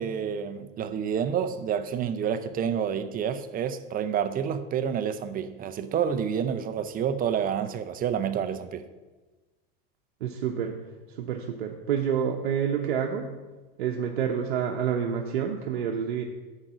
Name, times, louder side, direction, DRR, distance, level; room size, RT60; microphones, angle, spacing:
voice 1, 0.0-8.9, right 8 dB, 30° right, 0.6 m, -29 dB
voice 2, 10.2-10.8 11.1-13.3 13.8-16.2, right 8 dB, 90° right, 0.9 m, -28 dB
10.5 x 3.8 x 7.3 m
supercardioid pair, 120°, 31 cm